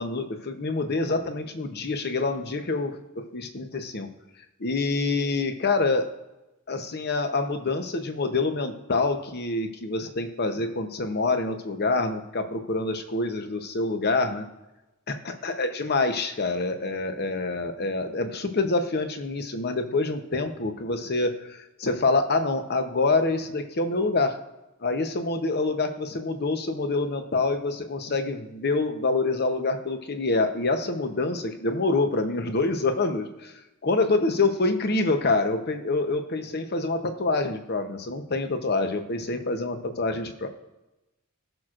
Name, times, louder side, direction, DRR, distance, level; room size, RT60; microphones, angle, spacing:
voice 1, 0.0-4.1 4.6-6.1 6.7-14.5 15.1-24.4 24.8-33.5 33.8-40.5, left 3 dB, 50° left, 7 dB, 0.8 m, -26 dB
16.0 x 6.2 x 2.5 m, 0.97 s
head